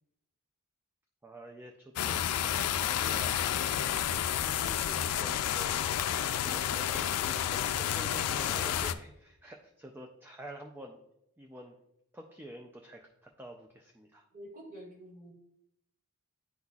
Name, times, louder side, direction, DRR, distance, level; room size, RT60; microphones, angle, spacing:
voice 1, 1.2-3.4 4.4-5.8 6.5-11.0 11.4-11.7 12.1-14.2, right 1 dB, 10° right, 1 dB, 0.4 m, -48 dB
sound 1, 2.0-8.9, left 10 dB, 85° left, 0.4 m, -30 dB
voice 2, 6.3-6.9 14.3-15.3, equal, 40° right, -2 dB, 1.6 m, -48 dB
10.5 x 4.0 x 2.3 m, 0.80 s
head